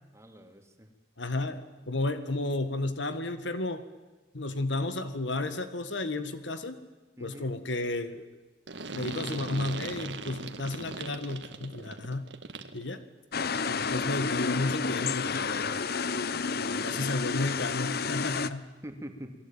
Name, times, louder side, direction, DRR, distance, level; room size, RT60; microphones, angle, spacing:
voice 1, 0.1-0.9 7.2-7.5 16.6-17.1 18.8-19.3, equal, 15° right, 5 dB, 2.9 m, -45 dB
voice 2, 1.2-3.8 4.3-6.8 7.2-8.3 8.9-12.3 12.7-13.0 13.6-15.8 16.8-18.7, left 2 dB, 75° left, 11 dB, 2.0 m, -32 dB
sound 1, 8.7-12.9, right 3 dB, 70° right, 2.0 m, -39 dB
sound 2, 13.3-18.5, left 5 dB, 55° left, 1.0 m, -30 dB
29.0 x 21.0 x 9.1 m, 1.2 s
head